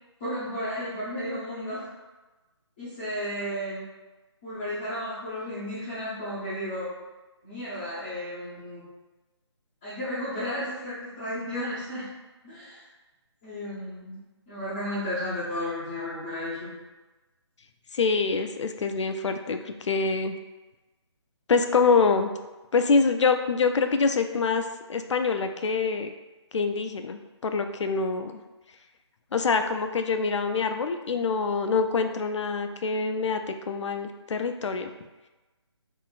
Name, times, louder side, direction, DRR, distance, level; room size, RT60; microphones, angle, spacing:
voice 1, 0.2-1.8 2.8-3.8 4.4-6.9 7.4-8.8 9.8-12.0 12.4-12.8 13.4-14.1 14.5-16.7, left 1 dB, 10° left, -14 dB, 0.5 m, -33 dB
voice 2, 17.9-20.4 21.5-22.3 22.7-24.6 24.9-26.1 26.5-28.4 29.3-34.9, left 4 dB, 80° left, 7 dB, 0.4 m, -25 dB
3.7 x 2.4 x 2.3 m, 1.1 s
hypercardioid pair, 165°, 15 cm